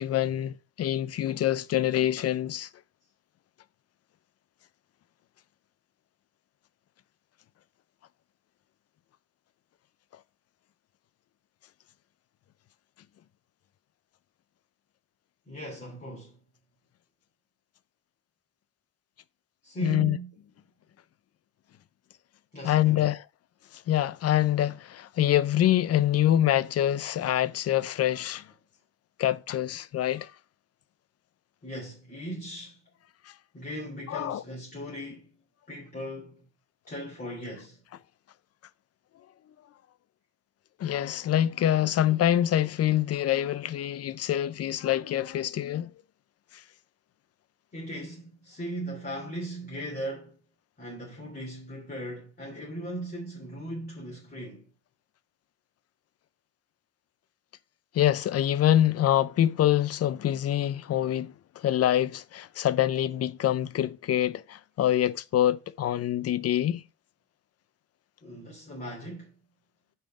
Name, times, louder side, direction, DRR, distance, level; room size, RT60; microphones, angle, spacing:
voice 1, 0.0-2.7 19.8-20.2 22.6-23.2 23.9-28.4 29.2-30.3 33.3-33.4 34.1-34.4 40.8-45.9 57.9-66.8, left 12 dB, 55° left, 0.6 m, -25 dB
voice 2, 15.5-16.4 19.6-20.3 22.5-23.1 31.6-32.8 33.5-35.4 35.7-36.5 36.9-37.8 47.7-50.4 50.8-54.7 68.2-69.3, right 1 dB, 30° left, 3.0 m, -38 dB
5.6 x 5.1 x 6.0 m
cardioid pair, 90°, 30 cm